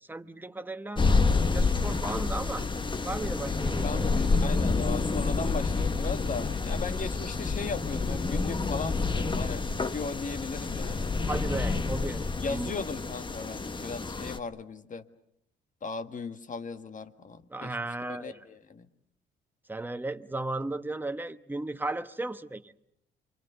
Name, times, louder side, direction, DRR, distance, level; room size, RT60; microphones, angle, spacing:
voice 1, 0.0-1.0 1.5-2.7 3.0-4.2 11.2-12.7 17.5-18.5 19.7-22.7, right 2 dB, 10° right, 1.0 m, -35 dB
sound 1, 1.0-14.4, left 4 dB, 25° left, 1.1 m, -28 dB
voice 2, 3.8-11.1 12.4-15.0 15.8-17.8 18.1-18.9, left 4 dB, 40° left, 1.6 m, -37 dB
28.0 x 24.5 x 6.8 m
cardioid pair, 90°, 20 cm